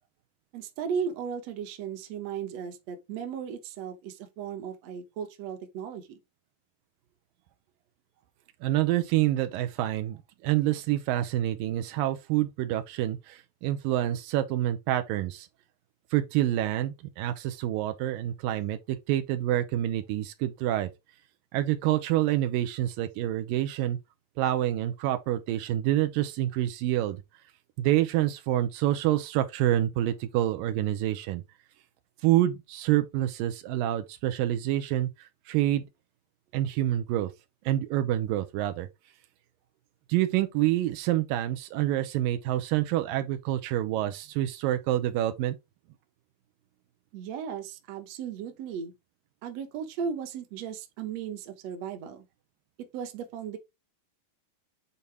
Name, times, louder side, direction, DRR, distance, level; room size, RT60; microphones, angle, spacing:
voice 1, 0.5-6.2 47.1-48.9 49.4-52.3 52.8-53.6, right 7 dB, 60° right, 1.9 m, -36 dB
voice 2, 8.6-15.5 16.1-20.9 21.5-24.0 24.4-27.2 27.8-31.4 32.2-35.9 36.5-37.3 37.7-38.9 40.1-45.6, right 13 dB, 85° right, 2.4 m, -27 dB
8.7 x 4.0 x 3.4 m
omnidirectional pair, 4.1 m